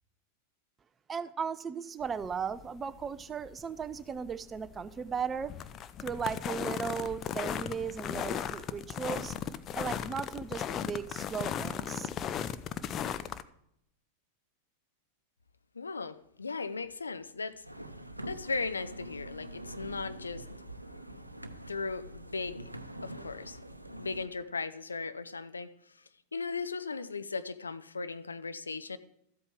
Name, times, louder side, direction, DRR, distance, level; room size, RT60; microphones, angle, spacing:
voice 1, 1.1-5.5 6.0-9.3 9.7-12.1, right 6 dB, 20° right, 14 dB, 0.6 m, -36 dB
sound 1, 2.0-13.4, left 9 dB, 30° left, 0.5 m, -37 dB
voice 2, 15.7-17.6 18.3-20.4 21.7-22.7 23.0-23.6 24.0-25.7 26.3-29.0, left 4 dB, 75° left, 12 dB, 0.6 m, -37 dB
sound 2, 17.6-24.3, right 1 dB, 85° right, 0.7 m, -45 dB
13.5 x 8.2 x 4.7 m, 0.75 s
figure-of-eight pair, 90°, 0 cm